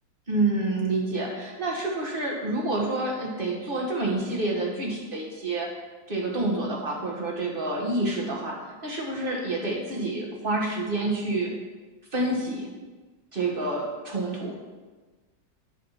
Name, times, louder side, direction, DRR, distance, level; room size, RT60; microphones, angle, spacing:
voice 1, 0.3-5.7 6.1-11.5 12.1-12.7 13.3-14.6, right 2 dB, 30° right, -1 dB, 1.7 m, -28 dB
9.9 x 4.9 x 5.9 m, 1.3 s
omnidirectional pair, 2.0 m